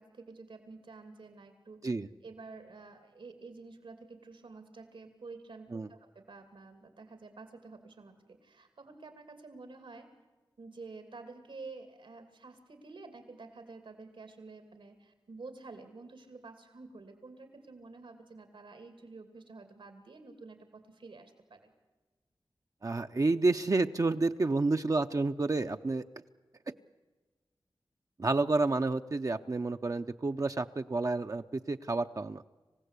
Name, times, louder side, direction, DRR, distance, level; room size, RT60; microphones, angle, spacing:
voice 1, 0.0-1.8 2.2-10.1 10.6-21.7, right 3 dB, 85° right, 7 dB, 2.7 m, -50 dB
voice 2, 22.8-26.0 28.2-32.4, right 3 dB, 40° right, 6 dB, 0.6 m, -30 dB
27.0 x 16.0 x 8.3 m, 1.2 s
wide cardioid pair, 70°, 9 cm